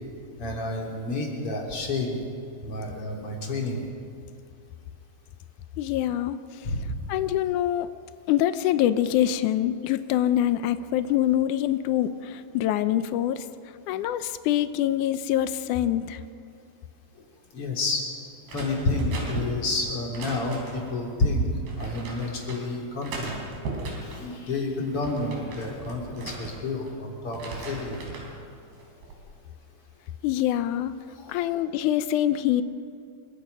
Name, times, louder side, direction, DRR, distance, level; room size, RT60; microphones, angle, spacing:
voice 1, 0.4-2.2 2.6-3.8 6.6-6.9 17.5-18.0 18.5-21.5 21.8-23.4 24.0-28.0 31.2-31.4, left 2 dB, 35° left, 0 dB, 4.2 m, -29 dB
voice 2, 5.8-6.4 7.1-7.9 8.3-13.5 13.9-16.2 30.2-31.0 31.3-32.6, left 12 dB, 90° left, 11 dB, 1.7 m, -25 dB
sound 1, 18.5-21.0 21.7-22.6 23.0-24.3 24.7-26.9 27.3-28.3 28.8-29.2, right 2 dB, 85° right, 6.0 m, -37 dB
27.5 x 24.5 x 5.6 m, 2.6 s
omnidirectional pair, 4.5 m